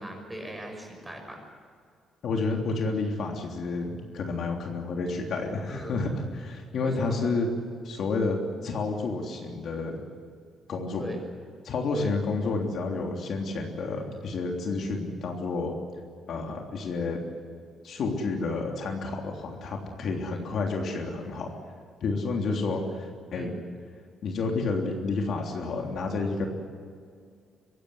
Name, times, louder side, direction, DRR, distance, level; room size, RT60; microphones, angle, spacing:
voice 1, 0.0-1.4 5.7-6.0 6.8-7.3 11.0-11.2 11.9-12.1 20.3-20.4 23.3-23.6, equal, 10° right, 2 dB, 6.1 m, -39 dB
voice 2, 2.2-7.5 7.8-8.4 8.6-10.0 10.7-11.0 11.6-15.8 16.3-17.2 17.8-21.5 22.0-23.5 24.2-26.5, left 3 dB, 60° left, 1 dB, 3.3 m, -30 dB
24.0 x 17.0 x 9.7 m, 2.2 s
cardioid pair, 135°, 0 cm